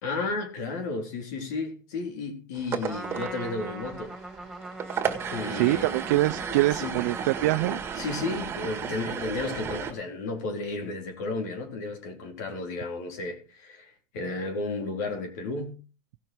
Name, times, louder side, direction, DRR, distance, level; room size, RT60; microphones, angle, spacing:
voice 1, 0.0-4.1 5.3-5.9 6.4-6.9 8.0-15.8, left 3 dB, 80° left, 3.8 m, -33 dB
sound 1, 2.5-9.9, right 7 dB, 25° right, 1.7 m, -34 dB
Trumpet, 2.8-9.0, right 2 dB, ahead, 3.0 m, -41 dB
voice 2, 5.5-7.8, right 18 dB, 80° right, 0.5 m, -24 dB
16.5 x 6.6 x 4.6 m
supercardioid pair, 125°, 9 cm